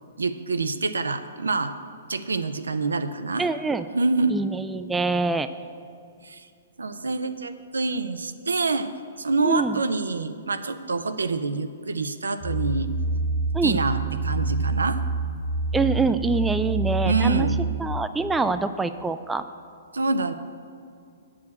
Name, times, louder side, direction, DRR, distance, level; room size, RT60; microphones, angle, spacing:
voice 1, 0.2-1.7 2.1-3.4 3.9-4.4 6.2-6.5 6.8-8.9 9.2-12.9 13.6-15.0 17.0-17.6 19.9-20.3, right 3 dB, 85° right, 10 dB, 0.5 m, -26 dB
voice 2, 3.4-3.8 4.3-5.5 9.4-9.8 13.5-13.8 15.7-17.5 17.8-19.4, right 3 dB, 10° right, 11 dB, 0.3 m, -25 dB
sound 1, 12.4-18.0, right 3 dB, 25° right, 0.7 m, -27 dB
8.2 x 4.9 x 7.2 m, 2.4 s
hypercardioid pair, 125°, 0 cm